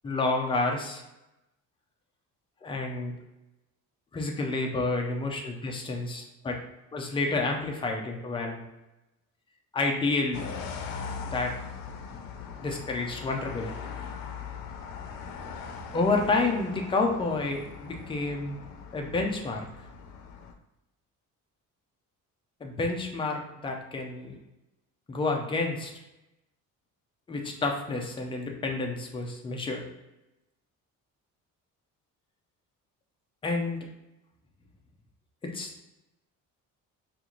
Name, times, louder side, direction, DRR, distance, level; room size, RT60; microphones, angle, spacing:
voice 1, 0.0-1.0 2.6-3.1 4.1-6.6 6.9-8.6 9.7-10.5 11.2-11.5 12.6-13.7 15.9-18.6 18.9-19.7 22.6-24.3 25.1-25.9 27.3-29.8 33.4-33.9 35.5-35.7, left 3 dB, 15° left, 1 dB, 0.3 m, -29 dB
sound 1, 10.3-20.5, left 6 dB, 80° left, 0.5 m, -40 dB
3.8 x 2.4 x 2.9 m, 0.95 s
cardioid pair, 175°, 33 cm